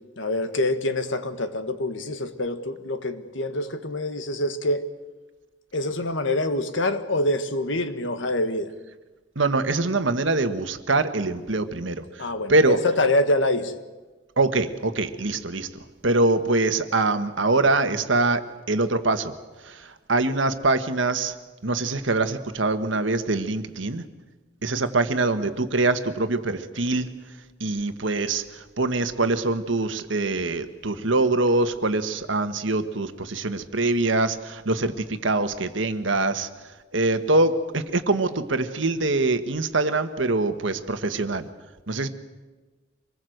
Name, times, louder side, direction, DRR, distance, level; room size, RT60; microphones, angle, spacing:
voice 1, 0.2-4.9 5.7-8.7 12.2-13.8, left 1 dB, 70° left, 1.5 m, -25 dB
voice 2, 9.3-12.8 14.4-15.7 16.0-19.3 19.6-21.3 21.6-24.0 24.6-27.1 27.6-36.5 36.9-41.5 41.9-42.1, right 2 dB, 70° right, 1.5 m, -24 dB
25.0 x 20.5 x 8.0 m
head